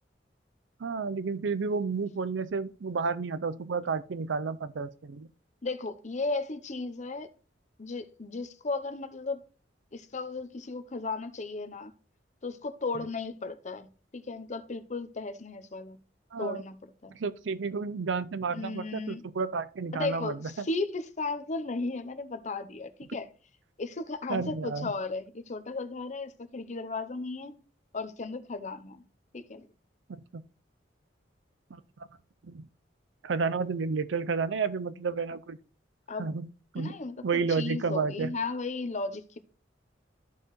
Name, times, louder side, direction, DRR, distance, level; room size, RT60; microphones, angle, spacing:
voice 1, 0.8-5.3 16.3-16.6 17.1-20.7 24.3-24.9 30.1-30.4 31.7-31.8 32.4-32.7 33.2-35.6 36.2-36.5 36.7-36.9 37.2-38.3, right 4 dB, 85° right, 0.5 m, -31 dB
voice 2, 5.6-7.3 7.8-9.4 9.9-11.9 12.4-16.0 16.4-16.8 17.0-17.1 18.5-19.2 19.9-23.2 23.8-27.6 27.9-29.0 29.3-29.7 36.1-36.4 36.8-37.2 37.5-39.4, left 3 dB, 40° left, 0.7 m, -35 dB
13.0 x 4.6 x 3.1 m
head